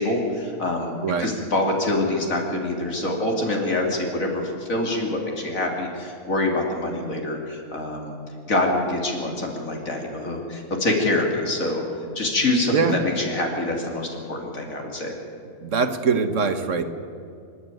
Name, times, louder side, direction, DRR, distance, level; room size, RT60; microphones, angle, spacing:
voice 1, 0.0-8.1 8.5-11.8 12.1-15.1, left 2 dB, 70° left, 0 dB, 3.1 m, -25 dB
voice 2, 15.6-16.9, right 5 dB, 60° right, 7 dB, 1.6 m, -22 dB
25.5 x 11.5 x 9.2 m, 2.5 s
omnidirectional pair, 1.5 m